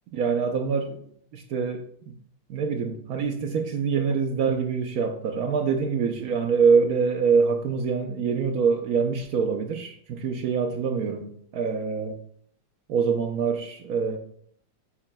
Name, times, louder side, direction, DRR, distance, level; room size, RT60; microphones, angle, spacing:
voice 1, 0.1-1.0 1.3-1.8 2.5-12.2 12.9-14.2, right 5 dB, 90° right, 5 dB, 0.7 m, -25 dB
8.8 x 8.6 x 2.2 m, 0.63 s
omnidirectional pair, 2.4 m